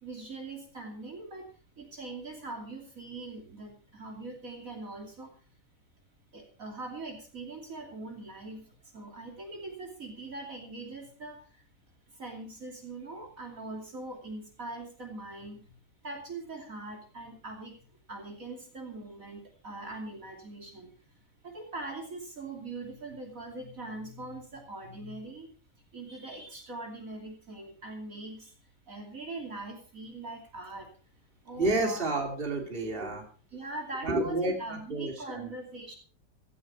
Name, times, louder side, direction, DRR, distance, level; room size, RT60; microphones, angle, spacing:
voice 1, 0.0-5.3 6.3-11.6 12.1-20.9 21.4-25.5 25.9-28.6 28.9-30.9 31.4-32.0 33.5-35.9, right 2 dB, 50° right, 2 dB, 3.2 m, -42 dB
voice 2, 31.6-33.2 34.0-35.5, right 2 dB, 30° right, 2 dB, 3.2 m, -30 dB
16.5 x 13.5 x 4.4 m, 0.39 s
omnidirectional pair, 1.8 m